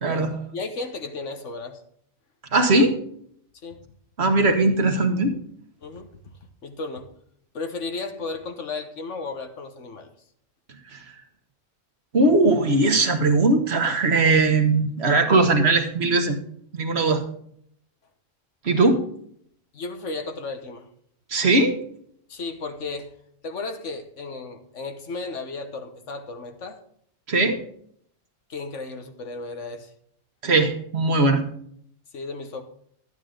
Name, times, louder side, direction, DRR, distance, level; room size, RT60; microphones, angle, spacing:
voice 1, 0.0-1.8 3.6-3.8 5.8-6.1 6.6-7.1 7.5-10.1 19.7-20.9 22.3-23.2 23.4-26.8 28.5-29.9 32.1-32.6, left 3 dB, 65° left, 6 dB, 1.4 m, -34 dB
voice 2, 2.5-3.0 4.2-5.4 10.9-11.0 12.1-16.4 16.7-17.2 18.6-19.0 21.3-21.8 27.3-27.6 30.4-31.4, right 2 dB, 55° right, 6 dB, 1.4 m, -19 dB
12.0 x 9.1 x 3.8 m, 0.65 s
omnidirectional pair, 1.3 m